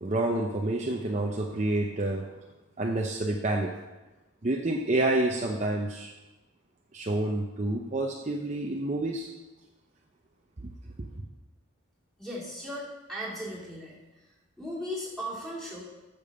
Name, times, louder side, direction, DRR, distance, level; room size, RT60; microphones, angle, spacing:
voice 1, 0.0-2.3 2.8-3.7 4.4-6.1 6.9-9.3, right 2 dB, 35° right, 1 dB, 0.7 m, -28 dB
voice 2, 12.2-14.0 14.6-15.8, equal, ahead, -6 dB, 2.9 m, -37 dB
8.6 x 7.0 x 6.7 m, 1.1 s
head